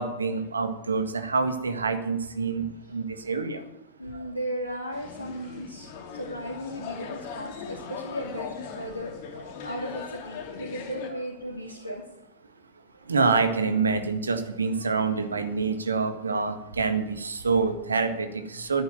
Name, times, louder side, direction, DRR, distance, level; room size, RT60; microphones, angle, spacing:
voice 1, 0.0-3.6 13.1-18.8, right 4 dB, 75° right, 8 dB, 1.8 m, -26 dB
voice 2, 4.0-12.0 14.7-14.9 16.2-16.3 17.5-17.6, equal, 85° left, -2 dB, 2.3 m, -36 dB
sound 1, 4.9-11.1, left 6 dB, 50° left, 2.9 m, -39 dB
11.0 x 9.6 x 9.0 m, 0.89 s
figure-of-eight pair, 90°, 0 cm